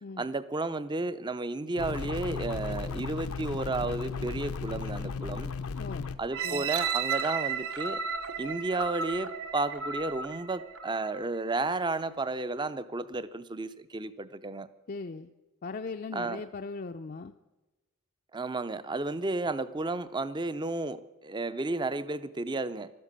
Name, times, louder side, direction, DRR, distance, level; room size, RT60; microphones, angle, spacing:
voice 1, 0.2-5.5 6.2-8.0 8.4-14.7 16.1-16.4 18.3-22.9, right 2 dB, 20° right, 15 dB, 0.5 m, -32 dB
sound 1, 1.8-6.2, left 4 dB, 90° left, 0.8 m, -35 dB
voice 2, 5.7-6.1 6.4-6.7 14.9-15.3 15.6-17.3, left 4 dB, 40° left, 5 dB, 0.5 m, -39 dB
sound 2, 6.3-11.3 11.8-11.9, right 6 dB, 70° right, 1.1 m, -34 dB
15.0 x 12.5 x 6.7 m, 1.1 s
head